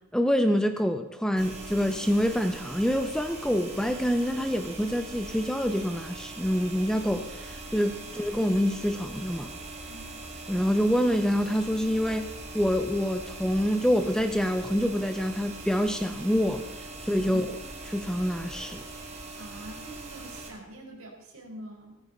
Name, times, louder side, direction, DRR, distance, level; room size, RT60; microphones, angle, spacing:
voice 1, 0.1-9.5 10.5-17.5 17.9-18.8, equal, 5° left, 7 dB, 0.7 m, -26 dB
sound 1, 1.4-20.5, right 2 dB, 30° right, 2.5 m, -41 dB
voice 2, 17.3-17.7 19.4-22.0, right 1 dB, 65° right, -1 dB, 5.1 m, -44 dB
17.5 x 14.5 x 4.0 m, 0.98 s
head